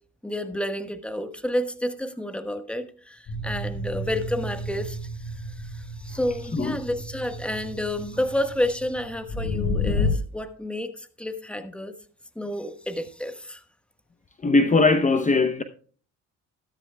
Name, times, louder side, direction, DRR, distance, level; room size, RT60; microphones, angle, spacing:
voice 1, 0.2-11.9 12.3-13.6, left 1 dB, 5° left, 1.3 m, -30 dB
sound 1, 3.3-10.1, left 2 dB, 80° left, 5.1 m, -31 dB
voice 2, 14.4-15.6, left 3 dB, 25° left, 0.8 m, -20 dB
13.0 x 13.0 x 2.3 m
cardioid pair, 90°, 30 cm